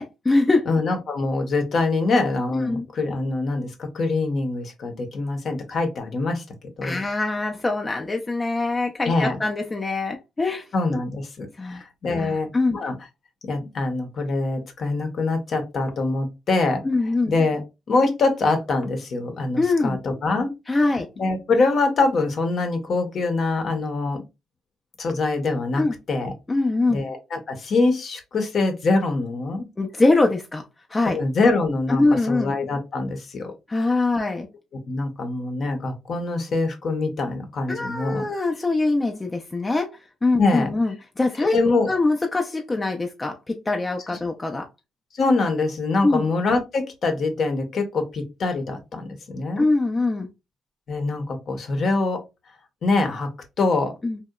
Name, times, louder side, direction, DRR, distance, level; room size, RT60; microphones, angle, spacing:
voice 1, 0.0-0.7 2.7-2.9 6.8-10.7 11.6-11.8 12.1-12.8 16.8-17.3 19.6-20.0 20.7-21.1 25.7-25.9 26.5-27.0 29.8-30.6 30.9-31.2 31.9-32.5 33.7-34.5 37.7-39.9 40.2-41.6 41.9-44.7 46.0-46.3 49.6-50.3 54.0-54.2, left 2 dB, 25° left, 2 dB, 0.4 m, -23 dB
voice 2, 0.7-6.4 6.8-7.0 9.1-9.4 10.7-12.9 13.5-16.8 17.3-17.6 17.9-20.5 21.2-24.2 25.0-26.3 26.9-29.7 31.1-33.5 34.9-38.3 40.4-40.7 41.4-41.9 45.1-49.7 50.9-52.2 52.8-53.3 53.6-53.9, left 3 dB, 55° left, 6 dB, 0.7 m, -24 dB
2.8 x 2.1 x 2.2 m, 0.24 s
cardioid pair, 90°, 0 cm